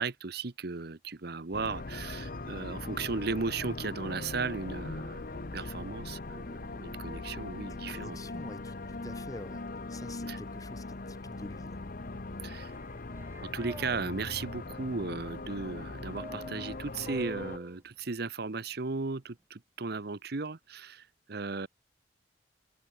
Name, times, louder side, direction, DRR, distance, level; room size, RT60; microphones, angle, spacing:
voice 1, 0.0-8.2 10.3-10.4 12.4-12.7 13.4-21.7, right 4 dB, 60° right, 1.0 m, -36 dB
sound 1, 1.5-17.6, left 2 dB, 50° left, 1.0 m, -40 dB
voice 2, 7.9-9.6 9.9-11.8, left 2 dB, 20° left, 0.9 m, -46 dB
sound 2, 12.7-14.0 16.2-17.8, right 2 dB, 15° right, 0.4 m, -45 dB
head